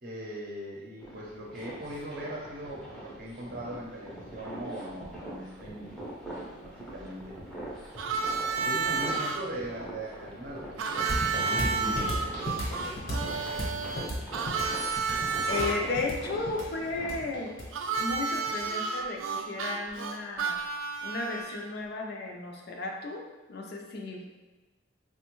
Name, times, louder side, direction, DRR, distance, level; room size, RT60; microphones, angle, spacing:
voice 1, 0.0-6.0 6.6-7.4 8.6-12.4 12.8-14.2, right 1 dB, 45° right, -3 dB, 0.6 m, -40 dB
sound 1, 1.0-17.1, right 1 dB, 5° left, 0.6 m, -43 dB
Harmonica, 8.0-9.4 10.8-15.8 17.7-21.7, right 4 dB, 80° right, 0.3 m, -31 dB
sound 2, 11.1-18.6, equal, 70° left, 1.1 m, -35 dB
voice 2, 15.5-17.5 18.0-20.6 21.0-24.3, left 3 dB, 55° left, 1 dB, 0.5 m, -34 dB
4.2 x 2.1 x 3.0 m, 1.2 s
head